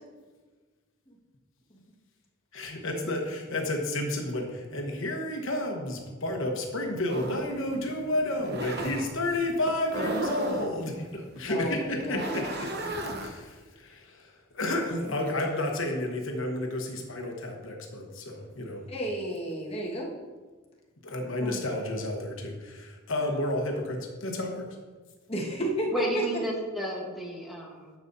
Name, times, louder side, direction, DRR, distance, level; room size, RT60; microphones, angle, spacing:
voice 1, 2.5-12.7 13.2-18.8 21.0-24.7, left 1 dB, 70° left, 1 dB, 1.1 m, -31 dB
sound 1, 7.1-13.3, right 1 dB, 50° right, 0.9 m, -36 dB
voice 2, 11.5-12.5 15.1-15.2 18.9-20.1 21.4-21.6 25.3-26.2, right 1 dB, 30° left, -3 dB, 1.5 m, -32 dB
voice 3, 25.9-27.9, equal, ahead, -3 dB, 1.2 m, -32 dB
10.5 x 7.0 x 2.7 m, 1.4 s
head